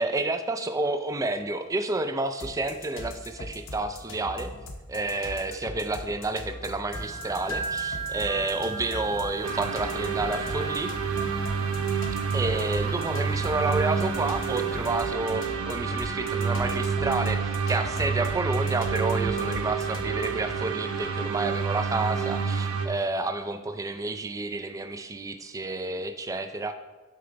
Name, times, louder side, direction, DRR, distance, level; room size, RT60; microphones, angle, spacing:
voice 1, 0.0-4.5 4.9-10.9 12.3-26.8, right 2 dB, 15° right, 8 dB, 0.3 m, -30 dB
sound 1, 2.4-20.5, left 1 dB, 60° left, 0.8 m, -40 dB
sound 2, 6.9-15.2, right 3 dB, 15° left, 0.9 m, -38 dB
sound 3, 9.4-22.9, right 6 dB, 75° right, 0.6 m, -29 dB
6.6 x 4.9 x 3.9 m, 1.2 s
head